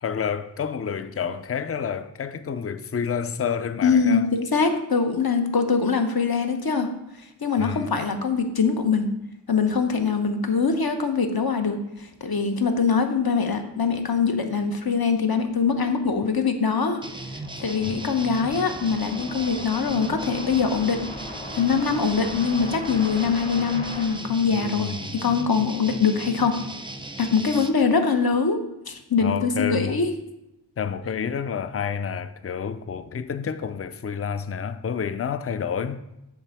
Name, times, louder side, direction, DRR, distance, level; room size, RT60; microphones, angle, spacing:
voice 1, 0.0-4.3 7.6-7.9 17.8-18.1 24.5-25.2 29.2-30.0 30.8-36.0, left 7 dB, 35° left, 0.4 m, -29 dB
voice 2, 3.8-6.9 7.4-9.1 9.5-17.0 17.6-21.1 21.5-26.6 27.2-28.6 28.9-30.1, left 5 dB, 55° left, 0.9 m, -23 dB
sound 1, 17.0-25.2, left 1 dB, 15° left, 1.1 m, -40 dB
sound 2, 17.0-27.7, right 2 dB, 10° right, 0.6 m, -37 dB
7.8 x 3.4 x 5.9 m
wide cardioid pair, 45°, 44 cm